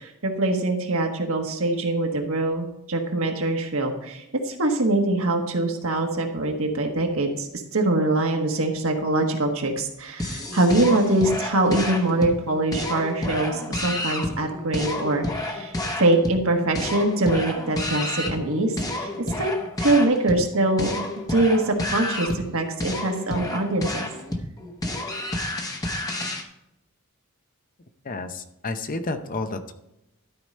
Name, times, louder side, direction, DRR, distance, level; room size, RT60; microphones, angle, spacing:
voice 1, 0.0-18.7 19.0-19.1 19.4-19.5 19.8-24.1, right 2 dB, 65° right, 3 dB, 1.5 m, -23 dB
sound 1, 10.2-26.4, left 1 dB, 15° left, 1.0 m, -30 dB
voice 2, 28.0-29.7, left 3 dB, 40° left, 8 dB, 0.7 m, -31 dB
12.5 x 4.8 x 5.4 m, 0.88 s
head